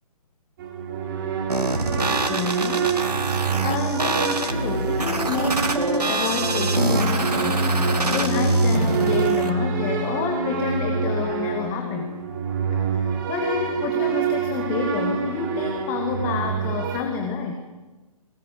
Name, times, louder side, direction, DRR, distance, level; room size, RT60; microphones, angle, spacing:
sound 1, 0.6-17.0, right 4 dB, 35° right, 3.3 m, -26 dB
sound 2, 1.5-9.5, right 3 dB, 85° right, 2.6 m, -26 dB
voice 1, 1.9-12.1 12.7-17.5, left 5 dB, 20° left, 3 dB, 2.0 m, -28 dB
23.0 x 19.0 x 8.0 m, 1.2 s
figure-of-eight pair, 150°, 20 cm